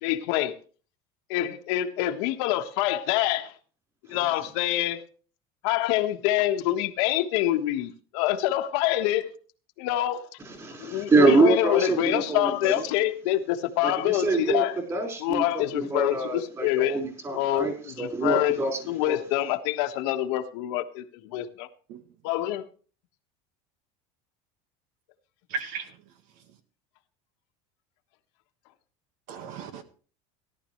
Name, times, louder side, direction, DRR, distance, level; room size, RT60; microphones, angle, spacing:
voice 1, 0.0-0.6 1.3-3.5 4.1-5.0 5.6-9.3 9.8-10.3 10.8-14.8 15.2-17.0 17.3-18.6 18.9-21.7 22.2-22.6, left 14 dB, 75° left, 1.4 m, -26 dB
voice 2, 10.4-12.8 13.8-14.6 14.9-19.2, right 3 dB, 20° right, 4.8 m, -25 dB
voice 3, 25.5-25.9 29.3-29.8, right 5 dB, 60° right, 1.6 m, -35 dB
17.5 x 11.5 x 3.2 m
cardioid pair, 150°, 14 cm